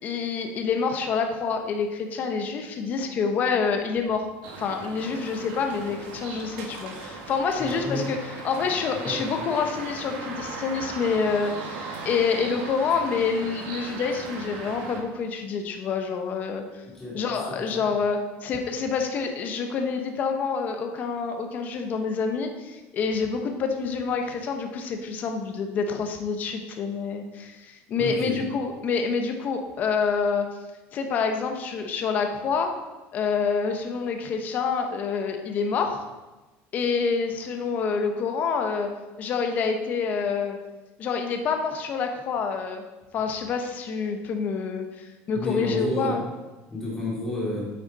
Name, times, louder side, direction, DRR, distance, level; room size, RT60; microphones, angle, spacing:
voice 1, 0.0-4.2 4.6-8.2 8.4-11.8 12.0-16.6 17.1-30.5 30.9-32.7 33.1-36.0 36.7-38.9 39.2-40.6 41.0-42.8 43.1-46.2, left 5 dB, 30° left, 5 dB, 0.9 m, -27 dB
sound 1, 4.4-15.0, right 3 dB, 80° right, 1.8 m, -38 dB
voice 2, 7.6-8.1 9.0-9.2 11.4-11.6 16.9-17.2 17.5-17.8 28.0-28.4 45.3-46.2 46.7-47.7, left 2 dB, 5° left, -7 dB, 3.1 m, -31 dB
9.0 x 8.0 x 4.1 m, 1.1 s
cardioid pair, 170°, 5 cm